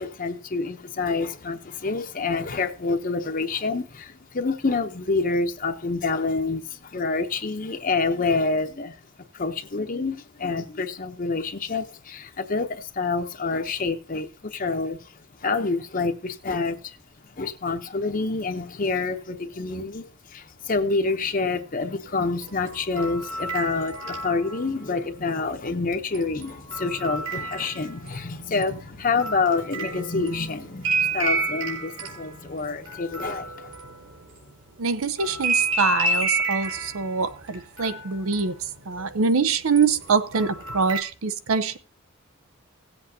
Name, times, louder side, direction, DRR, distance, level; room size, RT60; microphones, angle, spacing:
voice 1, 0.0-9.0 9.3-17.0 17.2-33.7, left 4 dB, 40° left, 0.7 m, -27 dB
sound 1, 22.3-24.9 26.1-28.3 28.6-34.5 35.2-39.3 39.8-41.0, right 3 dB, 60° right, 3.4 m, -30 dB
voice 2, 34.8-38.6 38.9-41.8, right 5 dB, 85° right, 0.7 m, -24 dB
17.5 x 7.9 x 2.8 m
head